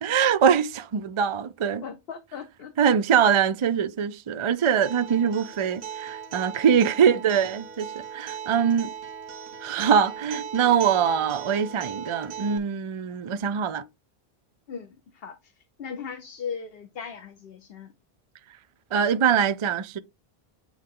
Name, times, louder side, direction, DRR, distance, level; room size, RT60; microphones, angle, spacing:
voice 1, 0.0-1.8 2.8-8.9 9.6-13.8 18.9-20.0, right 7 dB, 45° right, 0.4 m, -23 dB
voice 2, 1.8-3.0 6.8-6.9 14.7-17.9, left 6 dB, 70° left, 1.0 m, -38 dB
Acoustic guitar, 4.6-12.6, right 8 dB, 65° right, 1.2 m, -38 dB
8.6 x 3.2 x 3.7 m
omnidirectional pair, 1.0 m